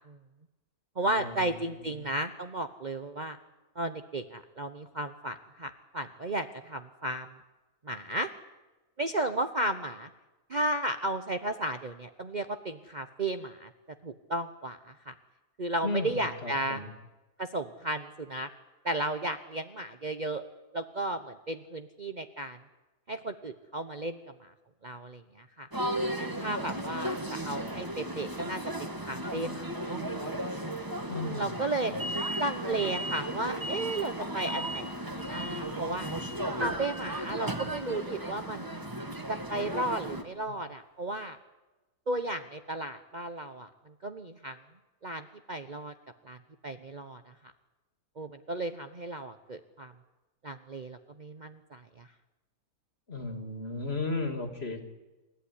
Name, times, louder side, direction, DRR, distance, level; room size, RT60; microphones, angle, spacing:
voice 1, 1.0-3.4 3.8-7.3 7.8-8.3 9.0-10.1 10.5-13.7 14.0-15.1 15.6-16.8 17.4-18.5 18.8-20.4 20.7-22.6 23.1-24.5 24.8-25.7 26.1-30.6 31.2-31.9 32.4-36.1 36.6-38.8 39.3-41.4 42.1-44.6 45.0-45.9 46.2-46.4 46.6-47.2 48.2-49.9 50.4-52.1, right 1 dB, 35° right, 8 dB, 0.9 m, -34 dB
voice 2, 15.8-16.9 31.1-31.6 31.9-32.0 53.1-54.8, left 3 dB, 45° left, 6 dB, 2.9 m, -35 dB
sound 1, 25.7-40.2, right 1 dB, 15° right, 1.8 m, -35 dB
sound 2, 36.6-38.4, right 1 dB, 60° right, 5.1 m, -41 dB
28.0 x 14.5 x 10.0 m, 1.1 s
omnidirectional pair, 1.5 m